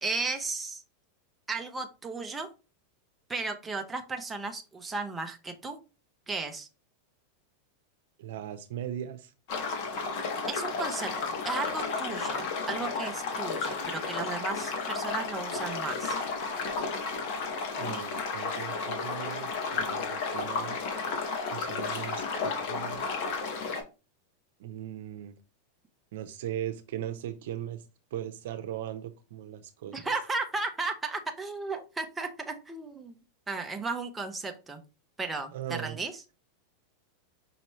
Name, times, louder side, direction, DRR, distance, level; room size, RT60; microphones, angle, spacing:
voice 1, 0.0-0.8 1.5-2.5 3.3-5.8 6.3-6.7 10.5-16.2 29.9-33.2 33.5-34.8 35.2-36.2, right 3 dB, 10° right, 0.7 m, -35 dB
voice 2, 8.2-9.3 17.8-20.8 21.5-23.0 24.6-25.3 26.1-27.8 28.1-30.0 35.5-36.0, right 11 dB, 75° right, 0.7 m, -38 dB
sound 1, 9.5-23.8, left 4 dB, 55° left, 1.3 m, -33 dB
5.5 x 2.9 x 3.1 m
supercardioid pair, 140°, 0 cm